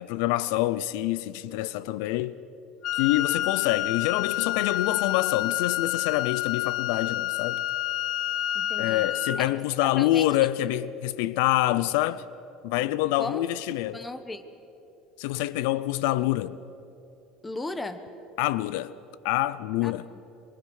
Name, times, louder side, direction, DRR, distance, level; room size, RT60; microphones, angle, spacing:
voice 1, 0.0-2.4 3.0-7.6 8.8-12.2 12.6-14.1 15.2-16.6 18.4-18.9 19.2-20.1, left 15 dB, 80° left, 0.6 m, -26 dB
Wind instrument woodwind instrument, 2.8-9.5, left 14 dB, 50° left, 1.0 m, -29 dB
voice 2, 8.5-9.1 9.4-9.5 9.8-10.3 13.2-13.5 13.9-14.4 17.4-18.0 19.8-20.2, left 2 dB, 10° left, 1.3 m, -36 dB
28.0 x 23.5 x 6.5 m
cardioid pair, 135°, 0 cm